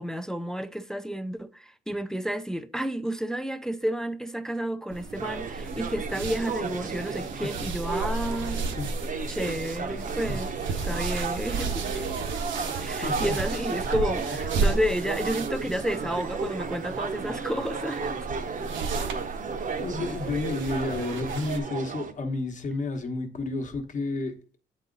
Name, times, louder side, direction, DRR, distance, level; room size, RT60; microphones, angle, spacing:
voice 1, 0.0-8.8 9.3-10.5 10.8-12.0 12.8-18.1, equal, 5° left, 0.4 m, -31 dB
sound 1, 4.9-21.6, right 4 dB, 75° right, 0.9 m, -34 dB
sound 2, 5.1-22.1, right 5 dB, 40° right, 0.8 m, -34 dB
voice 2, 8.5-9.3 10.3-10.4 13.0-13.7 19.4-24.3, left 3 dB, 40° left, 1.1 m, -32 dB
sound 3, 10.3-14.7, left 6 dB, 60° left, 0.9 m, -51 dB
8.1 x 4.1 x 3.9 m
cardioid pair, 90°, 20 cm